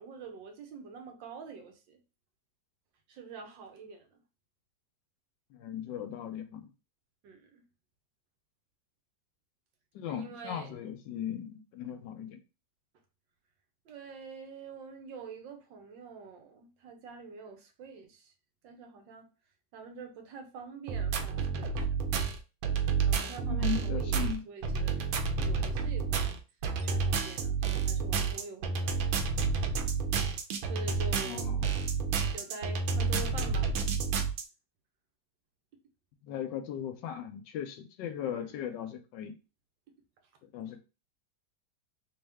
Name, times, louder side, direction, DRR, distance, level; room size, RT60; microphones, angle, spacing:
voice 1, 0.0-2.0 3.1-4.2 7.2-7.6 10.1-10.7 13.8-18.3 18.6-19.3 19.7-21.9 23.1-25.1 25.4-26.4 26.8-29.3 30.7-31.7 32.3-33.7 38.2-38.7, right 5 dB, 75° right, 1.5 m, -46 dB
voice 2, 5.5-6.7 9.9-12.4 23.4-24.4 31.2-31.6 36.2-39.4 40.4-40.8, left 9 dB, 75° left, 1.1 m, -38 dB
sound 1, 20.9-34.4, right 5 dB, 90° right, 1.4 m, -30 dB
3.3 x 3.1 x 3.4 m
omnidirectional pair, 2.1 m